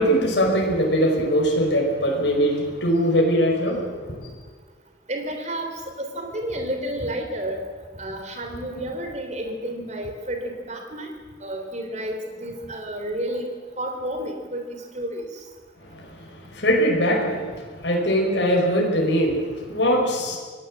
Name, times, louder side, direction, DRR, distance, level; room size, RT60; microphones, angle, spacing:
voice 1, 0.0-4.3 15.9-16.1 16.5-20.4, equal, 70° left, -1 dB, 5.1 m, -21 dB
voice 2, 5.1-7.6 8.0-11.1 11.4-13.5 13.8-14.6 14.9-15.3, right 1 dB, 40° right, 5 dB, 3.5 m, -31 dB
25.0 x 18.0 x 7.5 m, 1.5 s
head